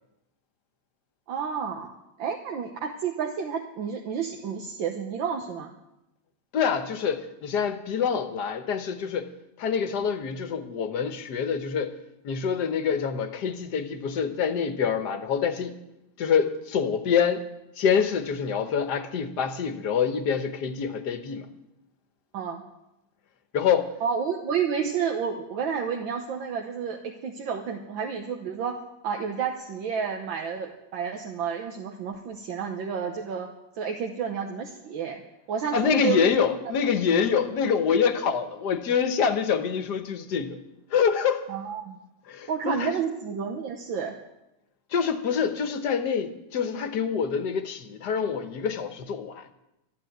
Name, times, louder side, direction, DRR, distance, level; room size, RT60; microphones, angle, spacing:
voice 1, 1.3-1.9 2.2-5.7 22.3-22.6 24.0-28.8 29.0-33.5 33.8-35.2 35.5-36.2 37.6-37.7 41.5-42.0 42.5-44.1, right 7 dB, 80° right, 1.8 m, -30 dB
voice 2, 6.5-9.3 9.6-11.9 12.2-15.7 16.2-17.4 17.8-21.5 23.5-23.9 35.7-40.6 40.9-41.5 42.3-43.0 44.9-49.5, left 6 dB, 60° left, 1.5 m, -26 dB
13.0 x 11.5 x 7.9 m
omnidirectional pair, 2.1 m